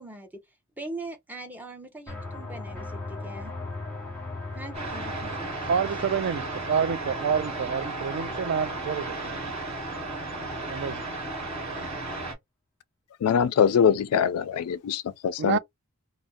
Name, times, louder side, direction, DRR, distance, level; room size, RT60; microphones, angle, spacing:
voice 1, 0.0-3.5 4.5-5.9, right 2 dB, 10° right, 0.7 m, -41 dB
sound 1, 2.1-8.8, left 2 dB, 10° left, 1.2 m, -39 dB
sound 2, 4.7-12.3, right 2 dB, 30° right, 1.4 m, -34 dB
voice 2, 5.7-9.4 10.7-11.0 15.4-15.6, right 7 dB, 55° right, 0.3 m, -28 dB
voice 3, 13.2-15.6, left 7 dB, 80° left, 0.3 m, -23 dB
2.5 x 2.0 x 3.7 m
head